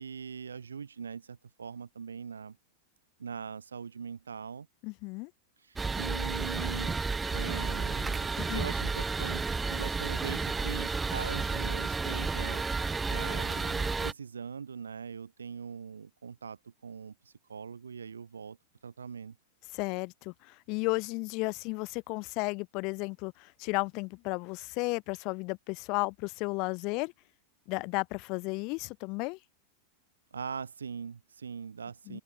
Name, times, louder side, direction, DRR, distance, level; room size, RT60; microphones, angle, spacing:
voice 1, 0.0-2.6 3.2-4.7 5.6-7.0 7.3-12.6 13.1-18.6 18.8-19.4 30.3-32.2, right 6 dB, 70° right, 3.0 m, -41 dB
voice 2, 4.8-5.3 8.4-8.7 19.7-27.1 27.7-29.4 32.1-32.2, left 28 dB, 45° left, 2.6 m, -34 dB
sound 1, 5.8-14.1, right 4 dB, 10° right, 2.1 m, -32 dB
figure-of-eight pair, 90°, 0 cm